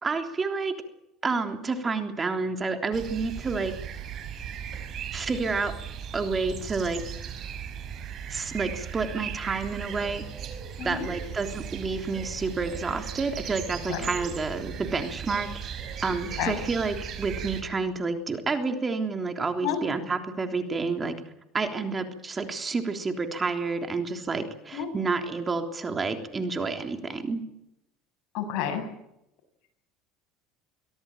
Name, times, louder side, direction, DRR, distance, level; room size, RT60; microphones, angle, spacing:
voice 1, 0.0-0.7 1.2-3.7 5.1-5.7 6.1-7.0 8.3-10.2 10.8-15.5 16.0-21.1 21.5-27.4, right 4 dB, 25° right, 5 dB, 3.4 m, -29 dB
sound 1, 2.9-17.6, right 8 dB, 45° right, 5.5 m, -37 dB
voice 2, 28.3-28.8, left 9 dB, 65° left, 5 dB, 8.0 m, -30 dB
24.0 x 17.0 x 9.0 m, 0.83 s
supercardioid pair, 115°, 0 cm